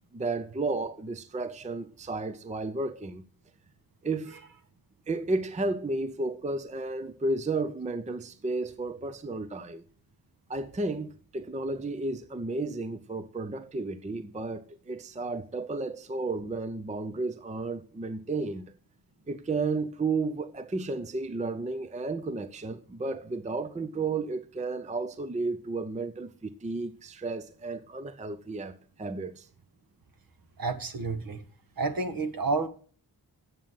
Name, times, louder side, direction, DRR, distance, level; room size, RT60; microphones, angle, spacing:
voice 1, 0.1-3.2 4.0-4.4 5.1-9.8 10.5-18.7 19.3-29.5, right 3 dB, 20° right, 0.5 m, -33 dB
voice 2, 30.6-31.4 31.8-32.7, right 3 dB, 60° right, 1.6 m, -30 dB
9.0 x 7.4 x 7.5 m
wide cardioid pair, 175°, 39 cm